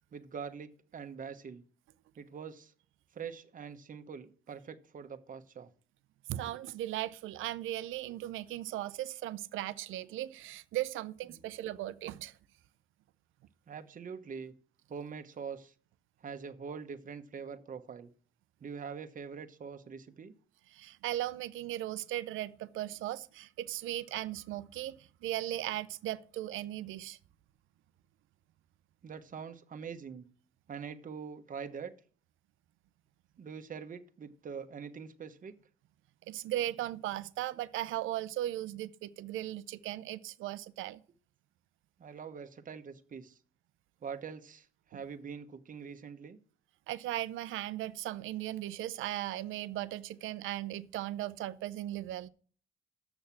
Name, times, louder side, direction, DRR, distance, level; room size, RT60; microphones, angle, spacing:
voice 1, 0.1-1.6 2.2-2.7 3.1-5.7 11.3-11.5 13.7-14.5 14.9-15.7 16.2-18.1 18.6-20.3 29.0-30.2 30.7-31.9 33.4-35.5 42.0-43.4 44.0-46.4, right 6 dB, 40° right, 1.1 m, -44 dB
voice 2, 6.3-12.3 20.7-27.2 36.3-41.0 46.9-52.3, right 14 dB, 85° right, 0.6 m, -37 dB
7.0 x 6.6 x 7.3 m
cardioid pair, 90°, 20 cm